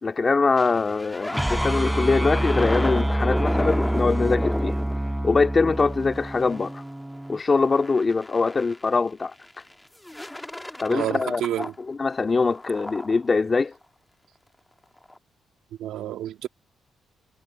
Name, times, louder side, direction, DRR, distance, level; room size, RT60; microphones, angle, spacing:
voice 1, 0.0-4.8 5.2-6.8 7.3-9.3 10.8-13.7, left 4 dB, 35° left, 2.4 m, -23 dB
sound 1, 0.6-5.8 6.5-6.8 7.1-8.8 9.5-9.7 10.0-11.8 12.1-13.2 15.0-15.2, left 1 dB, 10° left, 1.6 m, -32 dB
sound 2, 1.3-7.4, right 1 dB, 10° right, 4.4 m, -27 dB
voice 2, 10.9-11.7 15.8-16.5, right 12 dB, 90° right, 2.0 m, -29 dB
cardioid pair, 85°, 0 cm